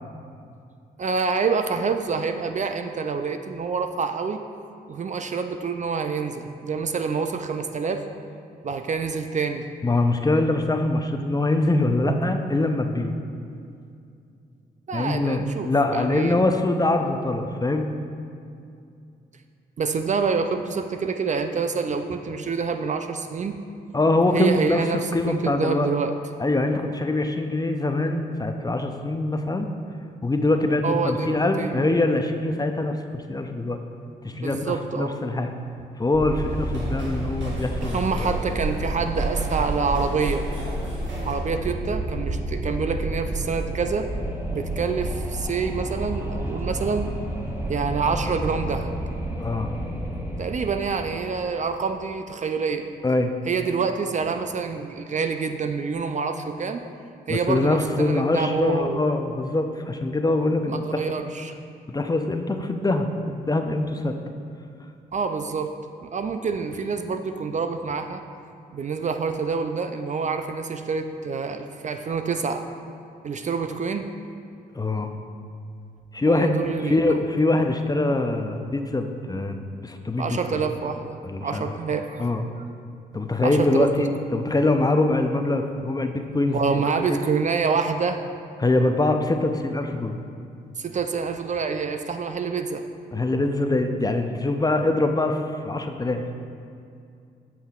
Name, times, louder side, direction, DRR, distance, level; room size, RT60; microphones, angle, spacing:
voice 1, 1.0-4.4 4.9-8.0 8.6-9.7 14.9-16.4 19.8-23.5 24.3-26.1 30.8-31.9 34.3-35.2 37.9-40.5 41.2-44.1 44.5-47.1 47.7-48.9 50.4-52.9 53.5-56.8 57.3-59.0 60.7-61.5 65.1-65.7 66.0-68.2 68.7-72.6 73.2-74.1 76.3-77.2 80.2-82.3 82.6-82.7 83.4-84.0 86.5-88.2 90.8-92.9, right 5 dB, 40° right, 7 dB, 0.4 m, -27 dB
voice 2, 9.8-13.1 14.9-17.9 23.9-25.9 26.4-29.7 30.2-33.8 34.2-35.5 36.0-38.4 49.4-49.7 53.0-53.3 57.3-61.2 61.9-64.2 74.7-75.1 76.1-76.6 76.8-80.6 81.2-81.8 82.2-82.4 83.1-87.2 88.6-90.2 93.1-96.2, left 2 dB, 20° left, 6 dB, 0.5 m, -23 dB
Wind, 36.1-51.5, right 1 dB, 10° right, 1.0 m, -30 dB
sound 1, 36.2-41.5, right 1 dB, 70° right, 1.2 m, -41 dB
8.4 x 5.6 x 2.4 m, 2.4 s
supercardioid pair, 50°, 20 cm